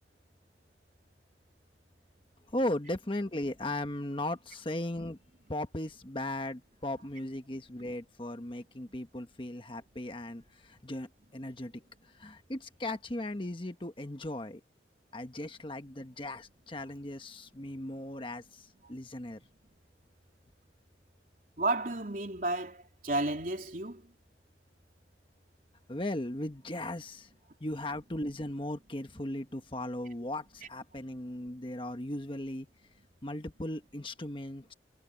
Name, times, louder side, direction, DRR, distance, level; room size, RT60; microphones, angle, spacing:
voice 1, 2.5-5.2 5.5-11.7 12.2-14.6 15.1-19.4 25.9-27.3 27.6-32.7 33.2-34.7, left 1 dB, 30° left, 1.2 m, -37 dB
voice 2, 21.6-24.0, right 2 dB, 50° right, 3.5 m, -32 dB
head